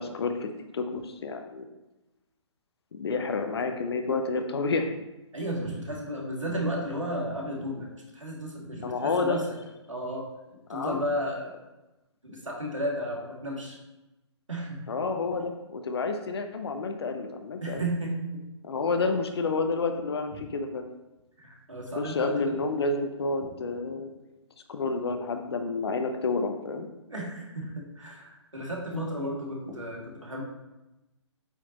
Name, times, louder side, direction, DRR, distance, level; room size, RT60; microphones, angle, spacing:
voice 1, 0.0-1.7 2.9-4.9 8.8-9.4 10.7-11.0 14.9-17.8 18.6-20.8 22.0-24.1 24.7-26.9 28.9-29.0, left 3 dB, 55° left, 6 dB, 0.8 m, -29 dB
voice 2, 5.3-7.9 8.1-9.4 9.9-10.3 10.7-11.5 12.2-13.8 14.5-14.9 17.6-18.4 21.4-22.6 27.1-30.4, equal, 85° right, -2 dB, 2.2 m, -33 dB
8.2 x 6.0 x 3.0 m, 0.99 s
figure-of-eight pair, 130°, 16 cm